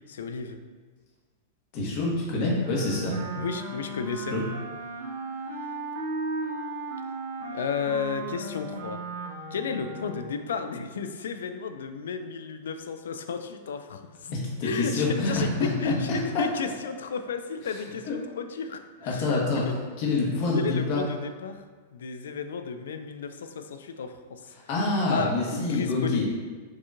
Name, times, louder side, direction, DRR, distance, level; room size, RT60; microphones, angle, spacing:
voice 1, 0.1-0.6 3.4-4.4 5.5-5.7 7.5-9.0 9.5-14.3 14.6-19.3 19.6-19.7 20.5-21.6 21.9-24.4 25.1-26.2, left 5 dB, 75° left, 8 dB, 0.3 m, -33 dB
voice 2, 1.7-3.2 4.3-4.4 14.3-16.4 18.1-18.2 19.0-19.6 20.0-21.1 24.7-26.2, left 3 dB, 50° left, -3 dB, 1.1 m, -26 dB
Wind instrument woodwind instrument, 2.6-10.4, right 3 dB, 65° right, 0.8 m, -36 dB
4.6 x 2.8 x 2.4 m, 1.4 s
hypercardioid pair, 105°, 0 cm